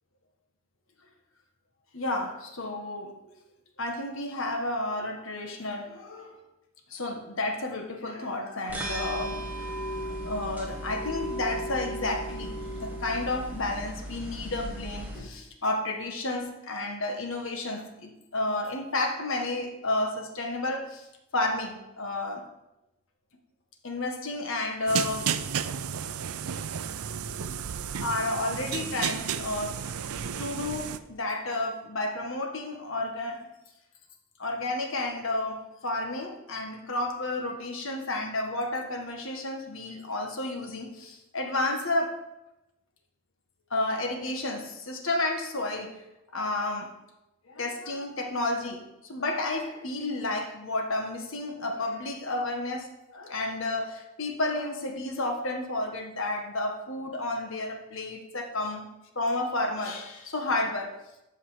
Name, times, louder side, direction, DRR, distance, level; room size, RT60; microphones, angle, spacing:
voice 1, 1.9-3.2 3.8-6.4 6.9-9.4 10.2-21.1 21.3-22.4 23.8-25.3 28.0-29.8 30.4-33.4 34.4-42.2 43.7-46.0 46.3-46.9 47.5-58.9 59.1-60.9, left 2 dB, 65° left, 3 dB, 1.6 m, -31 dB
sound 1, 8.7-15.2, right 1 dB, 5° right, 1.9 m, -36 dB
sound 2, 24.9-31.0, right 7 dB, 85° right, 0.5 m, -32 dB
13.5 x 5.5 x 5.1 m, 0.94 s
head